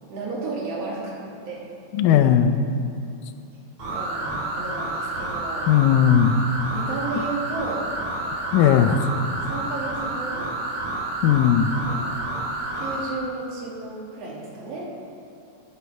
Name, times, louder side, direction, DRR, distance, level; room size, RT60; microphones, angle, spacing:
voice 1, 0.0-1.7 2.1-2.3 3.9-5.7 6.7-7.9 8.2-8.6 9.4-10.5 11.8-12.2 12.7-14.9, right 3 dB, 55° right, -3 dB, 2.3 m, -33 dB
voice 2, 1.9-2.6 5.7-6.4 8.5-9.0 11.2-11.7, left 9 dB, 85° left, 8 dB, 2.2 m, -17 dB
sound 1, 3.8-13.1, right 2 dB, 80° right, 4.1 m, -29 dB
9.9 x 8.2 x 4.6 m, 2.5 s
omnidirectional pair, 3.9 m